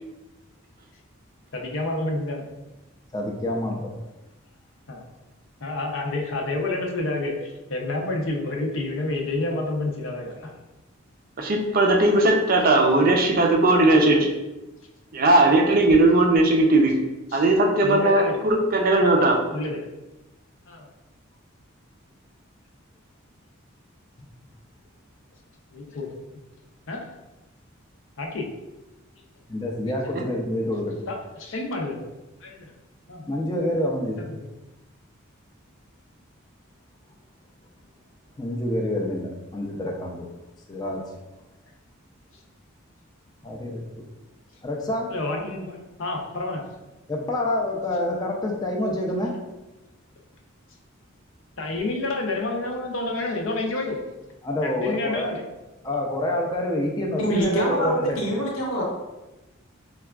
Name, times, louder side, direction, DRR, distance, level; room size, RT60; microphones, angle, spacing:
voice 1, 1.5-2.4 4.9-5.0 5.6-10.5 17.3-17.4 17.8-18.4 19.5-19.9 20.7-20.8 25.7-26.1 26.9-27.1 28.2-28.5 31.1-32.1 32.4-32.7 33.1-33.2 34.4-34.5 45.1-46.6 51.6-54.0 54.6-55.4, left 2 dB, 65° left, 1 dB, 0.6 m, -29 dB
voice 2, 3.1-3.9 29.5-31.0 33.3-34.2 38.4-40.3 40.7-41.0 43.4-44.0 44.6-45.2 47.1-49.4 54.4-55.4 55.8-58.2, left 1 dB, 20° left, 0 dB, 0.4 m, -27 dB
voice 3, 11.4-14.3 15.1-17.0 17.3-19.4 30.1-30.2, right 2 dB, 45° right, 2 dB, 0.4 m, -18 dB
voice 4, 57.2-58.8, right 1 dB, 85° left, -4 dB, 1.0 m, -24 dB
4.6 x 2.3 x 2.3 m, 1.0 s
head